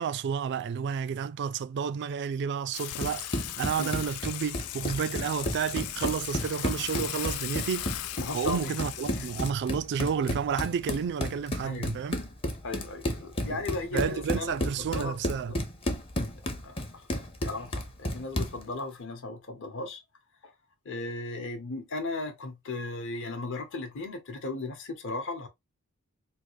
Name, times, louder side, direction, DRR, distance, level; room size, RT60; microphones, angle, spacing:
voice 1, 0.0-7.9 8.3-12.2 13.5-13.6 13.9-15.5, right 7 dB, 50° right, 0.3 m, -31 dB
Water / Water tap faucet / Sink (filling or washing), 2.7-9.5, left 14 dB, 75° left, 0.3 m, -38 dB
Run, 2.8-18.6, left 1 dB, 25° left, 0.6 m, -33 dB
voice 2, 8.2-8.8 9.1-9.3 11.6-11.9 12.6-15.2 15.5-15.6 16.6-17.1 17.4-20.0 20.4-20.5 20.8-25.5, left 3 dB, 60° left, 0.9 m, -36 dB
3.5 x 2.3 x 3.1 m
head